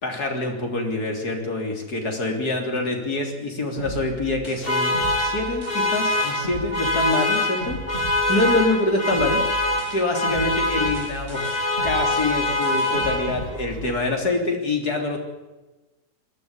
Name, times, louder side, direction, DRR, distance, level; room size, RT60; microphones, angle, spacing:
voice 1, 0.0-11.4 11.8-15.2, left 2 dB, 80° left, 3 dB, 4.1 m, -26 dB
sound 1, 3.8-8.8 9.1-14.1, right 1 dB, 40° right, 4.6 m, -37 dB
sound 2, 4.6-13.6, left 2 dB, 35° left, 3.2 m, -24 dB
20.0 x 14.0 x 9.9 m, 1.1 s
omnidirectional pair, 1.6 m